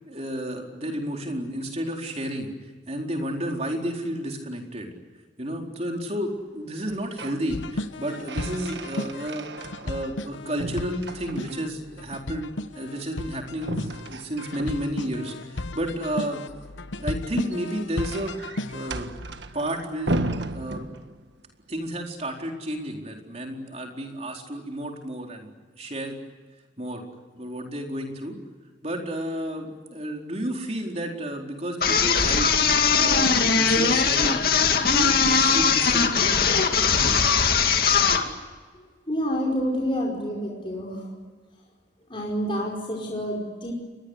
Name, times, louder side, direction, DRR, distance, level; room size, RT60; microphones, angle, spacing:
voice 1, 0.1-2.5 2.9-4.9 5.4-13.8 14.1-16.4 17.0-18.4 18.7-19.1 19.5-20.2 20.5-20.8 21.7-25.5 25.8-26.2 26.8-27.0 27.3-28.4 28.8-32.5 32.9-34.4 34.8-36.4, equal, 35° right, 1 dB, 4.3 m, -31 dB
sound 1, 6.8-7.5 7.8-10.3 10.6-11.8 13.6-15.2 17.2-21.4, right 2 dB, 70° right, 1.6 m, -35 dB
sound 2, 7.5-19.0, left 1 dB, 90° left, 1.1 m, -35 dB
sound 3, 31.8-38.3, left 5 dB, 50° left, 2.4 m, -20 dB
voice 2, 39.1-41.0 42.1-43.7, equal, 30° left, -2 dB, 5.2 m, -28 dB
29.5 x 23.0 x 8.2 m, 1.5 s
head